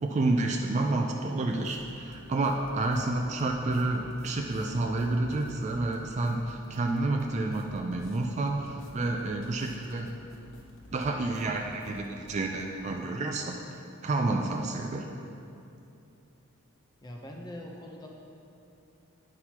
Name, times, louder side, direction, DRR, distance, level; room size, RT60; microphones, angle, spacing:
voice 1, 0.0-10.1 10.9-13.6 14.0-15.1, right 2 dB, 30° right, 2 dB, 0.3 m, -29 dB
sound 1, 1.6-12.6, equal, 60° left, 0.8 m, -51 dB
voice 2, 17.0-18.1, left 1 dB, 20° left, 0 dB, 0.6 m, -42 dB
9.6 x 6.0 x 2.9 m, 2.7 s
head